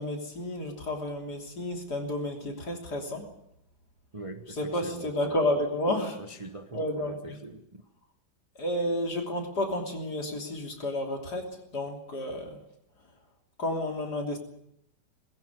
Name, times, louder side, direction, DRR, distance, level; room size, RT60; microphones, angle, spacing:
voice 1, 0.0-3.3 4.5-6.2 6.7-7.4 8.6-12.6 13.6-14.4, left 1 dB, 60° left, 3 dB, 3.8 m, -31 dB
voice 2, 4.1-5.4 6.2-7.9, right 2 dB, 20° right, 7 dB, 1.0 m, -42 dB
20.5 x 16.0 x 9.6 m, 0.77 s
omnidirectional pair, 2.0 m